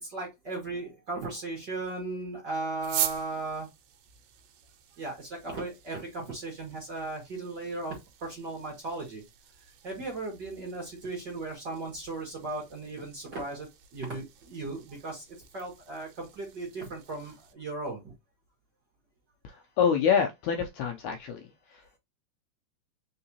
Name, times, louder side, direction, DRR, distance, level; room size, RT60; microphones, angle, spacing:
voice 1, 0.0-3.7 5.0-9.2 9.8-15.2 15.5-18.1, right 3 dB, 45° right, 1.6 m, -36 dB
sound 1, 2.8-17.5, right 11 dB, 90° right, 2.3 m, -42 dB
voice 2, 19.4-22.0, left 7 dB, 80° left, 1.7 m, -27 dB
4.6 x 3.6 x 2.8 m
omnidirectional pair, 3.8 m